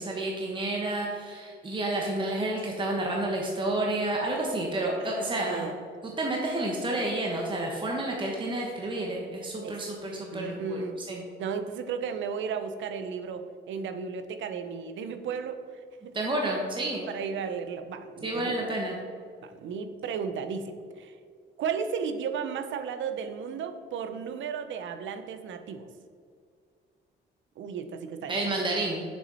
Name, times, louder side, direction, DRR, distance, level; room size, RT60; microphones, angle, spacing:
voice 1, 0.0-5.7 6.0-10.8 11.1-11.2 16.1-17.1 18.2-19.0 28.3-29.0, right 2 dB, 25° right, -1 dB, 1.2 m, -30 dB
voice 2, 5.0-5.7 9.6-9.8 10.3-11.0 11.4-15.6 16.0-16.1 17.1-18.6 19.4-21.1 21.6-25.9 27.6-28.4 28.6-28.8, right 6 dB, 75° right, 8 dB, 0.7 m, -34 dB
7.0 x 6.3 x 4.2 m, 2.2 s
cardioid pair, 90°, 20 cm